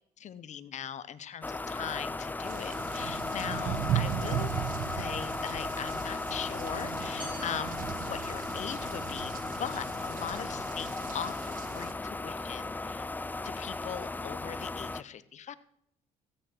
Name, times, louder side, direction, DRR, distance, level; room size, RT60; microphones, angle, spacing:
voice 1, 0.2-4.5 5.0-13.1 13.4-15.6, left 9 dB, 50° left, 15 dB, 1.0 m, -40 dB
sound 1, 1.4-15.0, left 3 dB, 10° left, 0.4 m, -36 dB
sound 2, 2.4-11.9, right 10 dB, 65° right, 1.1 m, -37 dB
sound 3, 7.2-8.9, right 1 dB, 35° right, 5.9 m, -49 dB
14.5 x 9.0 x 4.5 m, 0.73 s
supercardioid pair, 75°, 15 cm